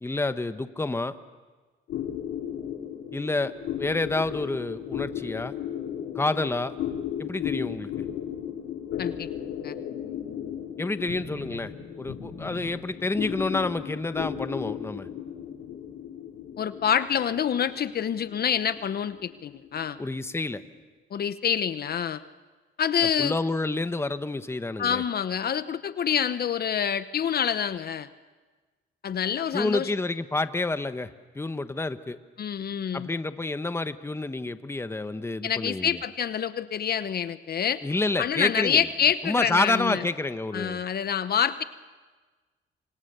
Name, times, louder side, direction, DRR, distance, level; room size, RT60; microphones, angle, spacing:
voice 1, 0.0-1.1 3.1-3.5 3.8-5.5 6.1-6.7 7.2-7.9 10.8-15.1 20.0-20.6 23.0-25.0 29.5-31.1 31.4-32.2 32.9-36.0 37.8-40.8, left 2 dB, 10° left, 11 dB, 1.1 m, -29 dB
sound 1, 1.9-20.7, left 9 dB, 85° left, 2.5 m, -36 dB
voice 2, 9.0-9.3 9.6-9.8 16.6-20.0 21.1-22.2 22.8-23.4 24.8-28.1 29.0-29.9 32.4-33.1 35.4-37.8 38.2-40.0 40.5-41.6, left 8 dB, 50° left, 13 dB, 0.9 m, -27 dB
26.5 x 26.0 x 6.8 m, 1.3 s
cardioid pair, 90°, 20 cm